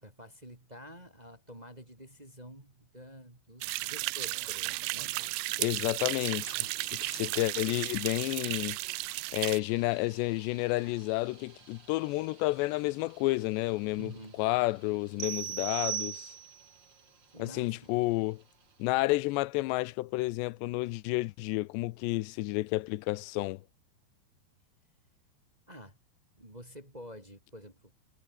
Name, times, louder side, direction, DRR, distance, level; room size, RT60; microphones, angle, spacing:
voice 1, 0.0-5.2 14.0-14.4 17.3-17.9 25.7-26.0 26.4-27.9, equal, 10° right, 2.5 m, -49 dB
sound 1, 3.6-9.6, right 22 dB, 80° right, 2.2 m, -34 dB
voice 2, 5.6-6.5 7.0-8.8 9.3-14.1 14.4-16.3 17.4-18.4 18.8-23.6, left 20 dB, 90° left, 2.9 m, -30 dB
sound 2, 6.3-18.9, right 5 dB, 30° right, 3.0 m, -57 dB
sound 3, 15.2-16.7, right 10 dB, 65° right, 1.5 m, -36 dB
omnidirectional pair, 4.9 m